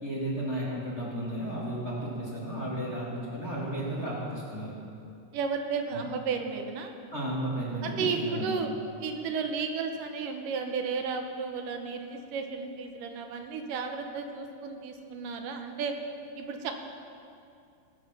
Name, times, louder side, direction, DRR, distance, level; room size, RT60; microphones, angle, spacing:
voice 1, 0.0-4.7 5.9-6.0 7.1-8.6, right 1 dB, 25° left, -7 dB, 1.9 m, -33 dB
voice 2, 5.3-6.9 7.8-8.7 9.0-15.9 16.4-16.7, right 5 dB, 80° right, 5 dB, 2.4 m, -33 dB
19.0 x 7.3 x 5.9 m, 2.5 s
omnidirectional pair, 3.9 m